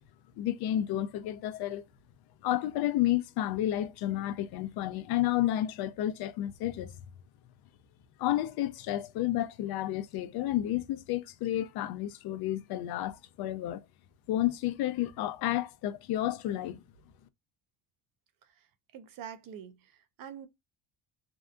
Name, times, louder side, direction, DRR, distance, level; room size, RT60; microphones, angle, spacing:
voice 1, 0.4-1.8 2.4-7.0 8.2-13.8 14.3-16.8, left 13 dB, 70° left, 0.6 m, -31 dB
voice 2, 18.9-20.5, right 9 dB, 60° right, 0.6 m, -46 dB
2.7 x 2.3 x 2.3 m
cardioid pair, 160°, 39 cm